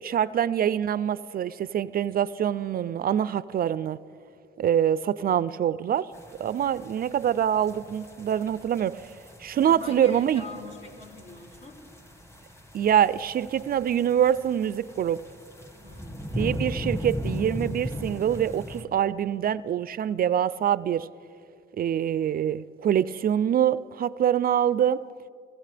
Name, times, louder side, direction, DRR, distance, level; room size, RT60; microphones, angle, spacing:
voice 1, 0.0-4.0 4.6-6.1 6.4-9.0 9.4-10.4 12.7-15.2 16.4-21.1 21.8-25.0, right 9 dB, 50° right, 0.4 m, -25 dB
sound 1, 6.1-18.8, equal, 15° left, 1.6 m, -38 dB
voice 2, 9.6-11.8 15.8-16.4, left 3 dB, 65° left, 3.1 m, -43 dB
26.0 x 15.5 x 3.4 m
cardioid pair, 90°, 20 cm